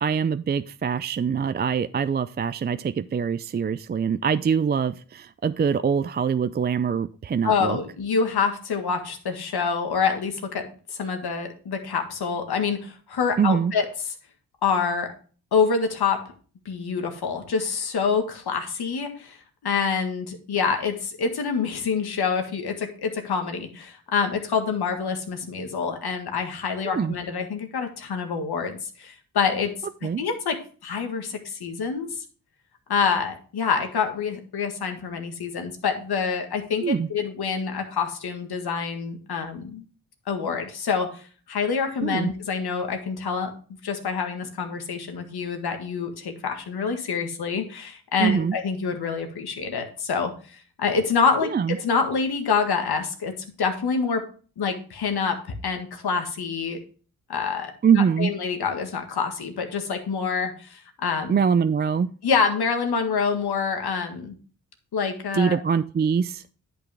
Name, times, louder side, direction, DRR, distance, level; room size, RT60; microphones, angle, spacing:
voice 1, 0.0-7.8 13.4-13.7 26.8-27.2 30.0-30.2 36.8-37.1 42.0-42.3 48.2-48.6 51.5-51.8 57.8-58.3 61.3-62.1 65.3-66.4, right 6 dB, 25° right, 12 dB, 0.4 m, -23 dB
voice 2, 7.4-13.9 14.6-15.1 15.5-16.3 16.7-19.4 19.6-29.7 30.0-32.2 32.9-39.8 40.3-43.5 43.8-54.3 54.6-56.8 57.3-61.4 62.2-64.4 64.9-65.6, left 5 dB, 70° left, 5 dB, 1.8 m, -26 dB
10.0 x 6.1 x 3.5 m, 0.39 s
cardioid pair, 60°, 39 cm